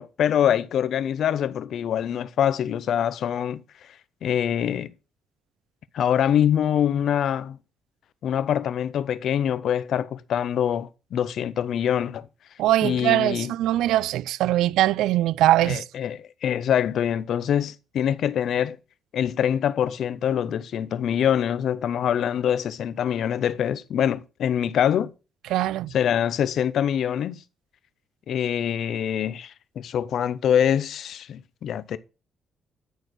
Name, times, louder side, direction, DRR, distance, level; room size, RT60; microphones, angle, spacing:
voice 1, 0.0-3.6 4.2-4.9 5.9-7.6 8.2-12.3 12.8-13.5 15.6-18.8 19.1-25.1 25.9-27.4 28.3-32.0, left 9 dB, 70° left, 0.7 m, -24 dB
voice 2, 12.6-15.8 25.5-25.9, right 14 dB, 90° right, 0.3 m, -21 dB
10.0 x 4.5 x 6.2 m
cardioid pair, 90°, 0 cm